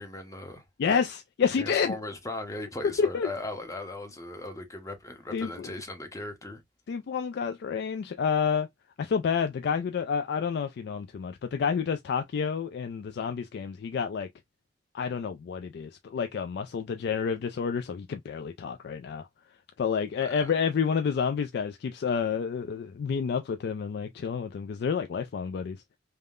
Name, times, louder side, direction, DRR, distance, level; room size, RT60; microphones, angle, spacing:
voice 1, 0.0-0.6 1.6-6.6 20.2-20.5, left 2 dB, 20° left, 0.7 m, -38 dB
voice 2, 0.8-1.9 3.0-3.3 5.3-5.7 6.9-8.7 9.0-14.3 14.9-19.3 19.8-25.8, left 6 dB, 60° left, 0.3 m, -29 dB
3.5 x 2.1 x 2.3 m
head